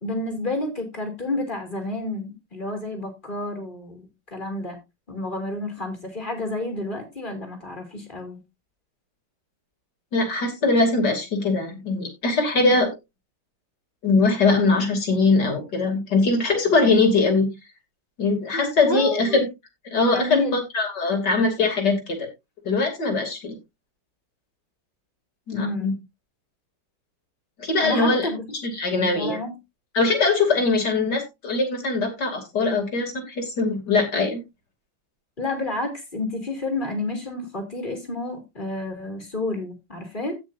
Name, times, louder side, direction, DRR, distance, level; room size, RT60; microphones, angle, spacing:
voice 1, 0.0-4.8 5.1-8.4 18.5-19.4 20.1-20.6 25.5-25.9 27.8-28.4 28.9-29.6 35.4-40.3, left 2 dB, 25° left, 4 dB, 3.1 m, -30 dB
voice 2, 10.1-12.9 14.0-17.5 18.2-19.5 19.9-20.4 20.7-22.3 22.7-23.6 25.5-25.9 27.6-28.3 28.6-29.4 30.0-34.4, left 3 dB, 60° left, 4 dB, 3.4 m, -21 dB
16.5 x 6.1 x 2.6 m, 0.22 s
omnidirectional pair, 2.1 m